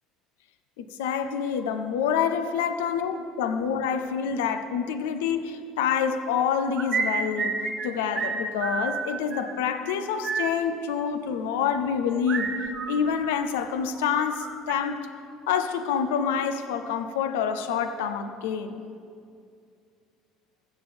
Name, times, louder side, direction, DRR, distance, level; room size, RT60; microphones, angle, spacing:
voice 1, 0.8-7.6 7.8-12.5 12.9-15.0 15.5-18.8, left 7 dB, 85° left, 9 dB, 0.6 m, -27 dB
sound 1, 6.5-7.9 8.1-8.3 8.6-9.5 9.9-10.0 10.2-10.5 12.3-13.7 14.0-14.7, right 5 dB, 45° right, 1.0 m, -30 dB
15.5 x 7.0 x 3.4 m, 2.4 s
supercardioid pair, 80°, 0 cm